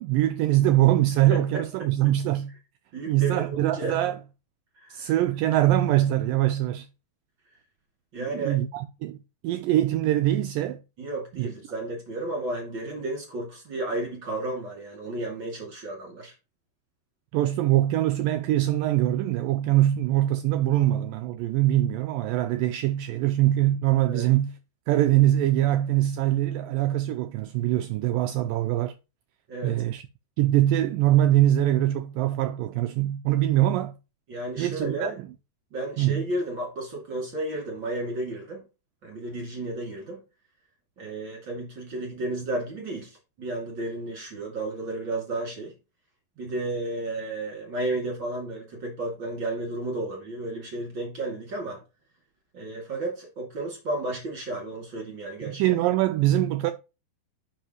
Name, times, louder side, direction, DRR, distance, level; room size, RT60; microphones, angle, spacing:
voice 1, 0.0-2.5 3.1-4.2 4.9-6.9 8.2-9.2 9.4-10.8 11.4-11.5 17.3-24.5 24.9-28.9 29.6-30.0 30.4-33.9 34.6-35.1 36.0-36.2 55.4-56.7, right 14 dB, 85° right, 2.0 m, -23 dB
voice 2, 1.3-1.6 2.9-4.0 4.8-4.9 8.1-8.6 11.0-16.3 24.1-24.2 29.5-29.8 34.3-35.2 35.7-38.6 39.0-40.2 41.0-45.7 46.4-51.8 52.5-55.6, right 2 dB, 35° right, 2.8 m, -32 dB
10.5 x 5.4 x 3.1 m
omnidirectional pair, 4.4 m